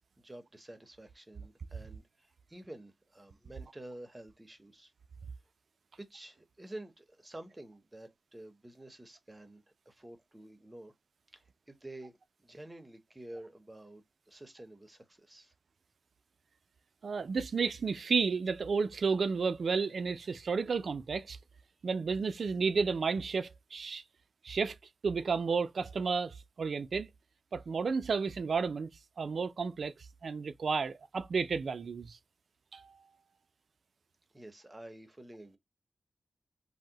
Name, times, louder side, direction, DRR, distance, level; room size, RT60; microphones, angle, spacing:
voice 1, 0.2-4.9 6.0-10.9 11.3-12.1 12.4-15.5 34.3-35.6, right 1 dB, 15° right, 0.6 m, -50 dB
voice 2, 17.0-21.4 21.8-24.0 24.4-24.8 25.0-27.1 27.5-28.9 29.2-29.9 30.2-32.2 32.7-33.1, right 5 dB, 65° right, 0.3 m, -32 dB
2.6 x 2.0 x 3.7 m
wide cardioid pair, 90°, 0 cm